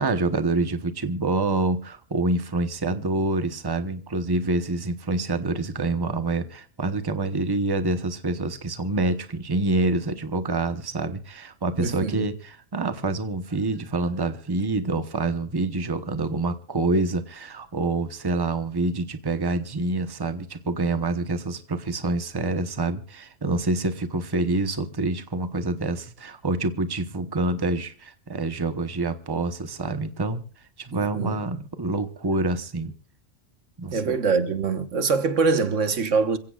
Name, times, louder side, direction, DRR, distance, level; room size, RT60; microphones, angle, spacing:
voice 1, 0.0-30.4 30.8-32.9 33.8-34.2, right 2 dB, 20° right, 1.0 m, -26 dB
voice 2, 11.8-12.2 31.1-31.4 33.9-36.4, right 4 dB, 85° right, 1.7 m, -23 dB
27.0 x 16.0 x 2.4 m
omnidirectional pair, 1.2 m